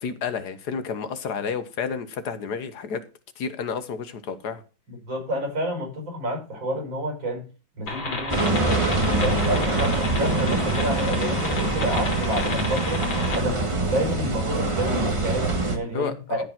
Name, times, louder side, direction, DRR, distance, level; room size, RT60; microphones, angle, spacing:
voice 1, 0.0-3.0 3.4-4.6 15.8-16.4, left 6 dB, 60° left, 11 dB, 1.5 m, -31 dB
voice 2, 4.9-7.5 7.8-13.1 13.3-16.4, equal, 90° right, 3 dB, 6.2 m, -29 dB
sound 1, 7.9-13.4, left 2 dB, 85° left, 4.2 m, -31 dB
sound 2, 8.3-15.8, right 2 dB, 20° right, 1.4 m, -24 dB
14.0 x 5.1 x 5.8 m, 0.34 s
omnidirectional pair, 2.1 m